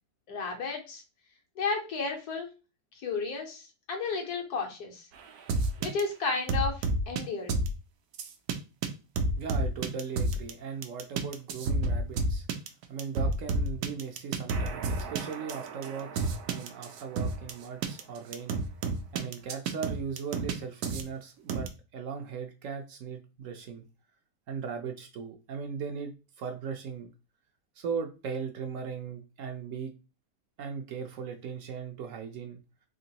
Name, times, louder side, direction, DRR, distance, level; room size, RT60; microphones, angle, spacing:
voice 1, 0.3-1.0 1.6-2.5 3.0-5.1 5.8-7.6, left 4 dB, 75° left, 1 dB, 1.5 m, -33 dB
sound 1, 5.5-6.0 6.5-7.2 7.5-7.7 8.2-8.5 8.8-8.9 9.2-10.5 10.8-17.5 17.8-18.0 18.3-20.5 20.8-21.0 21.5-21.7, right 2 dB, 85° right, 1.2 m, -30 dB
voice 2, 9.4-12.5 12.9-18.6 19.1-23.8 24.5-27.1 27.8-29.9 30.6-32.6, right 6 dB, 65° right, 5 dB, 0.9 m, -38 dB
3.6 x 2.9 x 2.8 m, 0.30 s
omnidirectional pair, 1.6 m